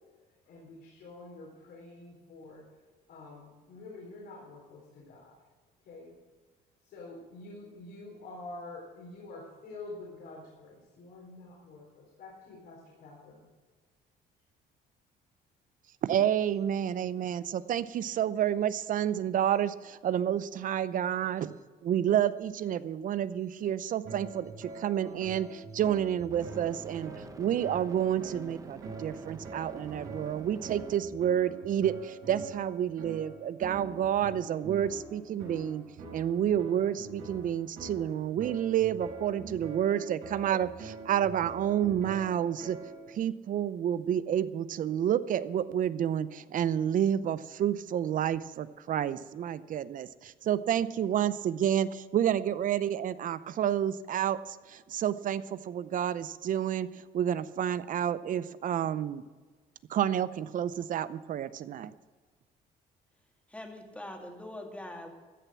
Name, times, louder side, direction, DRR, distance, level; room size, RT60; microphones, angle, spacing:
voice 1, 0.4-2.6 3.1-5.4 5.9-6.1 6.8-13.4, left 2 dB, 70° left, -3 dB, 3.9 m, -47 dB
voice 2, 16.0-21.5 21.8-27.1 27.4-35.8 36.1-42.8 43.1-56.9 57.1-59.2 59.9-61.9, right 10 dB, 50° right, 16 dB, 0.7 m, -29 dB
sound 1, 21.4-21.6 26.3-30.9, right 3 dB, 20° right, 1.1 m, -48 dB
sound 2, 24.0-43.1, right 3 dB, 75° right, 5.5 m, -45 dB
voice 3, 63.5-65.1, left 1 dB, 5° left, 2 dB, 2.4 m, -43 dB
14.5 x 6.8 x 8.6 m, 1.4 s
cardioid pair, 110°, 17 cm